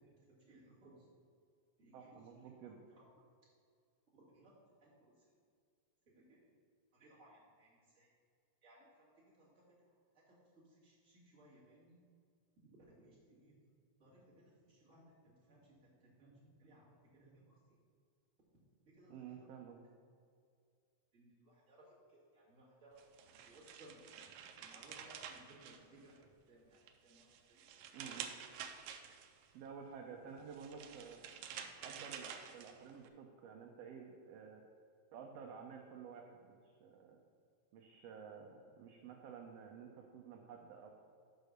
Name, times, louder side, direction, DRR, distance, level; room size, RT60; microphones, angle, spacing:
voice 1, 0.3-1.0 1.8-2.1 2.9-3.1 4.1-4.5 4.8-5.1 6.1-6.5 6.9-8.1 8.6-9.1 9.4-9.6 10.7-12.0 12.6-13.6 14.0-17.6 18.9-19.4 21.1-23.0 23.4-24.2 24.6-26.2 26.5-27.6, right 1 dB, 25° right, -7 dB, 2.3 m, -63 dB
voice 2, 1.9-2.8 19.1-19.8 27.9-28.3 29.5-31.2 31.8-34.6 35.1-36.4 36.6-37.2 37.7-40.9, right 6 dB, 75° right, 1 dB, 1.5 m, -52 dB
sound 1, 23.0-26.3 26.7-29.5 30.4-33.1, right 8 dB, 90° right, 1.3 m, -50 dB
6.6 x 5.0 x 6.5 m, 2.3 s
omnidirectional pair, 3.4 m